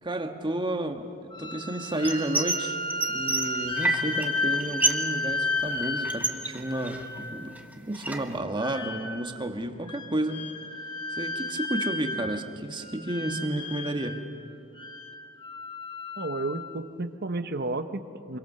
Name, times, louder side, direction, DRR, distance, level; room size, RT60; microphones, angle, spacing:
voice 1, 0.0-2.8 3.1-7.5 7.9-10.5 11.1-14.2, right 1 dB, 25° right, 6 dB, 1.5 m, -31 dB
sound 1, 1.3-7.5 8.6-9.4 9.9-12.5 12.7-14.3 14.8-16.8, left 2 dB, 25° left, 1.9 m, -33 dB
sound 2, 2.0-2.6 2.9-4.3 4.5-5.1 5.4-7.2 7.6-8.4, right 2 dB, 10° right, 1.3 m, -28 dB
voice 2, 16.2-18.4, right 2 dB, 50° right, 10 dB, 1.0 m, -32 dB
26.5 x 23.5 x 6.7 m, 2.6 s
head